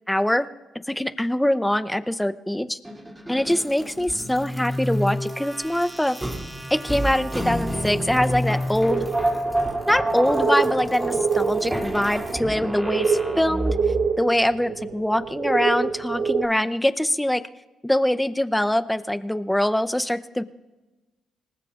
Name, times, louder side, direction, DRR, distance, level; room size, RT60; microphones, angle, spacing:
voice 1, 0.1-0.5 0.9-2.8 3.3-6.2 6.7-9.1 9.9-13.8 14.2-17.4 17.8-20.4, left 1 dB, 5° left, 12 dB, 0.6 m, -23 dB
sound 1, 2.8-14.1, equal, 10° right, 2.8 m, -28 dB
sound 2, 8.9-16.5, right 5 dB, 60° right, 0.8 m, -26 dB
26.0 x 20.0 x 2.5 m, 1.2 s
cardioid pair, 90°, 0 cm